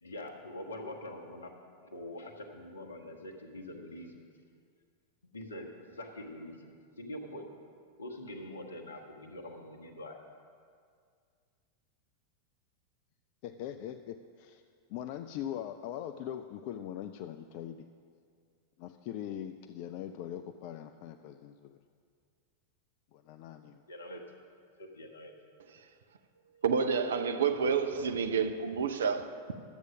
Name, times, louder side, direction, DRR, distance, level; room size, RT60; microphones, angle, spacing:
voice 1, 0.0-1.5 1.8-4.2 5.3-7.5 8.0-10.2 23.9-24.4 24.8-25.3 26.4-26.6, left 1 dB, 70° left, 4 dB, 1.2 m, -44 dB
voice 2, 13.4-14.6 14.9-17.9 18.8-21.8 23.1-23.8, left 10 dB, 45° left, 9 dB, 0.4 m, -41 dB
voice 3, 26.6-29.5, right 6 dB, 65° right, 8 dB, 0.7 m, -29 dB
12.0 x 8.1 x 6.0 m, 2.2 s
figure-of-eight pair, 90°, 0 cm